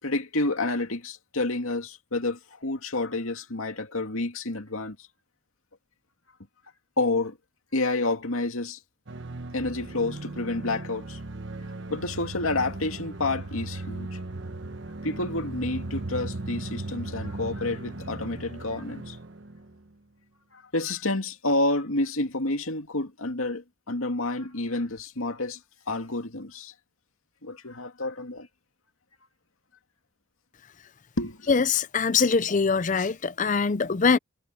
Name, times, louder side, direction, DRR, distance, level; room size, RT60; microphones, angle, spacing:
voice 1, 0.0-5.0 7.0-7.4 7.7-8.8 9.5-11.2 11.9-14.2 15.0-19.2 20.5-25.6 25.9-26.7 27.4-28.5 31.2-31.5, left 2 dB, 85° left, 2.4 m, -29 dB
sound 1, 9.1-19.8, right 2 dB, 60° right, 1.2 m, -37 dB
voice 2, 31.5-34.2, left 5 dB, 35° left, 0.5 m, -23 dB
head